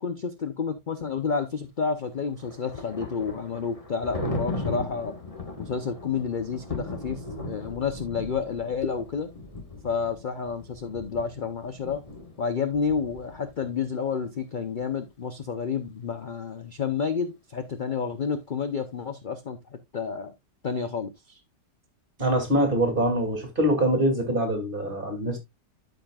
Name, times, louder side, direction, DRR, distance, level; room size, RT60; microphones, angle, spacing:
voice 1, 0.0-5.1 5.6-9.3 9.8-12.0 12.4-19.6 19.9-20.3 20.6-21.4, left 6 dB, 55° left, 0.5 m, -30 dB
Thunder, 2.0-13.7, left 2 dB, 20° left, 1.5 m, -37 dB
voice 2, 22.2-25.4, right 1 dB, 30° right, 2.8 m, -24 dB
13.0 x 5.3 x 2.3 m
omnidirectional pair, 1.9 m